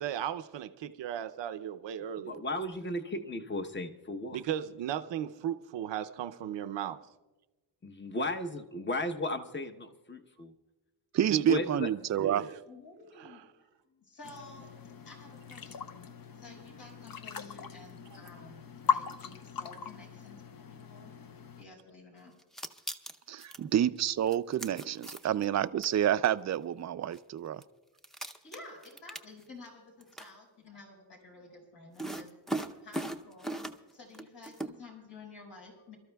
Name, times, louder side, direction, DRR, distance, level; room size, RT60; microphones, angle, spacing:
voice 1, 0.0-2.4 4.3-7.0 11.3-11.6 12.2-12.6 13.2-13.4, right 10 dB, 75° right, 10 dB, 0.7 m, -36 dB
voice 2, 2.3-4.4 7.8-10.5 11.5-11.9 12.2-12.3, left 2 dB, 25° left, 7 dB, 1.0 m, -35 dB
voice 3, 11.1-12.4 23.3-27.6, right 10 dB, 40° right, 14 dB, 0.4 m, -29 dB
voice 4, 12.7-13.5 13.9-21.1 21.6-22.3 23.8-23.9 28.4-32.3 32.7-33.6 33.9-36.0, left 3 dB, 70° left, 0 dB, 5.1 m, -52 dB
sound 1, 14.2-21.6, left 6 dB, 50° left, 0.8 m, -39 dB
sound 2, 22.4-23.6 24.3-25.4 25.8-25.9 27.1-27.2 27.6-27.7 28.0-29.7 30.0-30.3 32.0-33.9 34.1-34.7, right 1 dB, ahead, 0.6 m, -38 dB
28.5 x 13.0 x 2.3 m, 1.1 s
cardioid pair, 100°, 44 cm